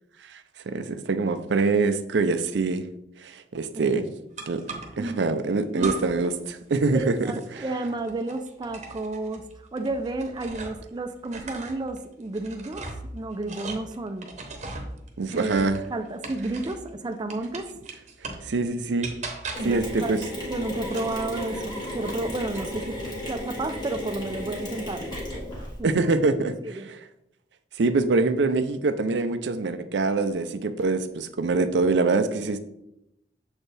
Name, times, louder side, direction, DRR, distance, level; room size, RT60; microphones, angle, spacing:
voice 1, 0.7-2.8 3.2-4.1 4.5-4.6 5.0-7.2 7.5-7.6 15.2-15.8 18.4-19.1 19.6-20.2 25.8-27.0 27.8-32.6, right 3 dB, 80° right, 10 dB, 0.5 m, -24 dB
sound 1, 4.4-5.1 5.7-6.3 6.6-10.9 11.2-16.9 17.3-18.5 19.0-19.8 20.8-22.2 22.5-23.1, right 3 dB, 40° right, 0.9 m, -39 dB
voice 2, 6.9-9.4 9.7-12.9 13.1-14.3 15.3-17.7 19.6-20.2 20.5-23.0 23.3-25.2 25.8-26.1 26.4-26.9, right 2 dB, 25° right, 6 dB, 0.4 m, -32 dB
Mechanisms, 19.5-25.8, left 1 dB, 25° left, 1.8 m, -34 dB
7.0 x 4.4 x 3.3 m, 0.84 s
head